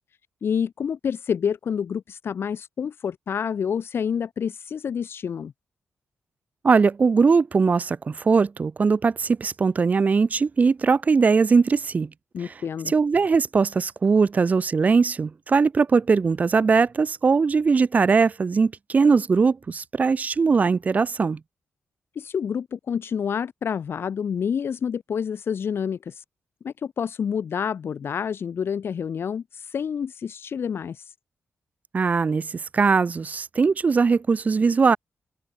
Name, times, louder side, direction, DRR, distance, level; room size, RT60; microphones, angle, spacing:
voice 1, 0.4-5.5 12.3-12.9 22.2-26.2 26.6-31.1, left 7 dB, 55° left, 5.8 m, -28 dB
voice 2, 6.6-12.1 12.4-12.5 12.9-21.4 31.9-35.0, right 5 dB, 35° right, 1.2 m, -20 dB
open air
wide cardioid pair, 135°, 5 cm